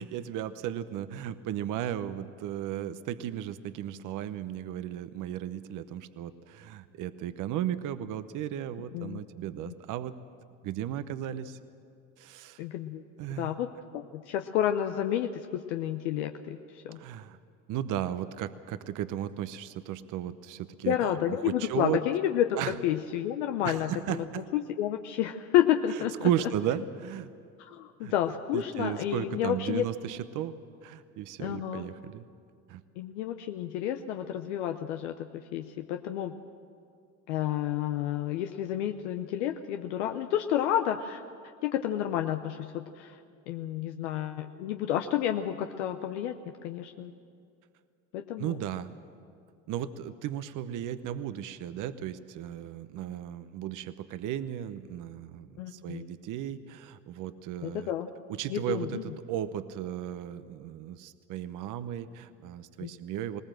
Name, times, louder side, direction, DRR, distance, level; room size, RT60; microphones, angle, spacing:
voice 1, 0.0-10.1 10.6-11.6 12.2-12.6 13.2-13.5 16.9-17.4 17.7-21.0 21.3-22.0 22.6-22.8 23.6-24.5 26.2-27.3 28.0-28.1 28.5-30.5 30.8-32.3 32.7-32.8 48.4-48.9 49.7-57.9 58.3-63.4, right 11 dB, 60° right, 12 dB, 0.9 m, -35 dB
voice 2, 12.6-13.0 13.4-17.0 20.9-24.2 24.5-26.3 27.6-29.8 31.4-31.9 33.0-36.3 37.3-41.2 41.6-43.2 43.5-46.4 46.6-47.1 48.1-48.6 55.6-56.1 57.6-58.1 58.5-59.0 62.8-62.9, left 11 dB, 90° left, 6 dB, 0.8 m, -30 dB
20.0 x 19.0 x 7.7 m, 2.4 s
supercardioid pair, 75°, 34 cm